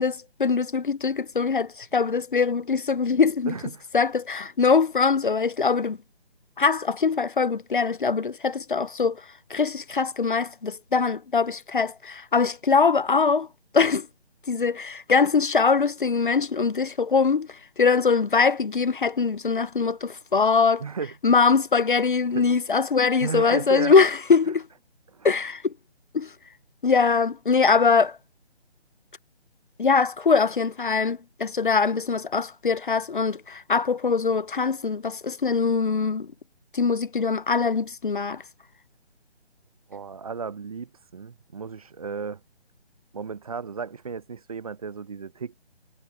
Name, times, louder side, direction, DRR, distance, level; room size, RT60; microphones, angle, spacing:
voice 1, 0.0-3.5 3.9-6.0 6.6-9.2 9.5-13.5 13.7-14.1 14.5-20.8 21.2-24.7 25.2-25.7 26.1-26.3 26.8-28.2 29.8-36.3 36.7-38.4, left 5 dB, 50° left, 0.9 m, -22 dB
voice 2, 3.5-3.8 20.8-21.1 22.3-22.5 23.2-23.9 25.1-25.3 39.9-42.4 43.1-45.6, right 5 dB, 35° right, 1.0 m, -34 dB
figure-of-eight pair, 150°, 33 cm